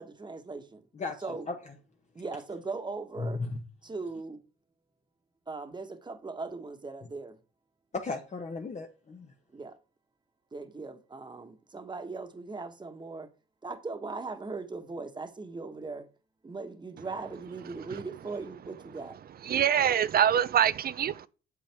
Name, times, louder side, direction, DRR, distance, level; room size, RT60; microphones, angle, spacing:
voice 1, 0.0-0.8 1.2-1.5 2.1-3.4 3.8-4.4 5.5-7.4 9.5-9.8 10.5-13.3 13.6-16.1 16.4-19.2, right 3 dB, 20° right, 1.4 m, -39 dB
voice 2, 0.9-1.5 3.2-3.6 7.9-9.3, left 3 dB, 35° left, 1.2 m, -35 dB
voice 3, 19.4-21.3, right 9 dB, 50° right, 0.5 m, -24 dB
8.2 x 7.3 x 3.5 m
cardioid pair, 90°, 20 cm